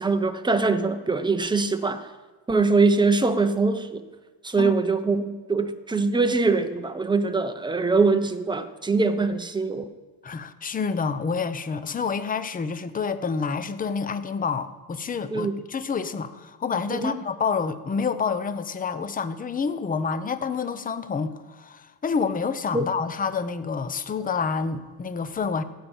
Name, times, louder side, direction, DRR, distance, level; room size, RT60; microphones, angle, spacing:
voice 1, 0.0-2.0 2.5-4.0 4.4-9.8 15.3-15.5 16.9-17.1 22.7-22.8, right 3 dB, 10° right, 0.8 m, -23 dB
voice 2, 10.2-25.6, left 5 dB, 20° left, 0.6 m, -28 dB
14.5 x 5.5 x 8.9 m
cardioid pair, 125°, 42 cm